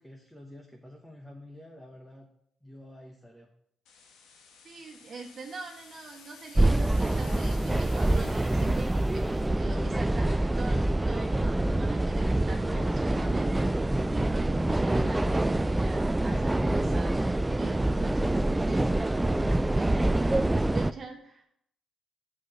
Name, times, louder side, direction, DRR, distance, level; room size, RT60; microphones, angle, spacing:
voice 1, 0.0-2.3 2.6-3.5, left 1 dB, 5° left, 0 dB, 1.2 m, -49 dB
sound 1, 3.9-9.5, left 5 dB, 85° left, 1.3 m, -52 dB
voice 2, 4.6-21.5, right 4 dB, 45° right, -1 dB, 1.7 m, -43 dB
sound 2, 6.6-20.9, right 1 dB, 10° right, 0.3 m, -26 dB
6.7 x 4.9 x 6.4 m, 0.71 s
cardioid pair, 90°, 0 cm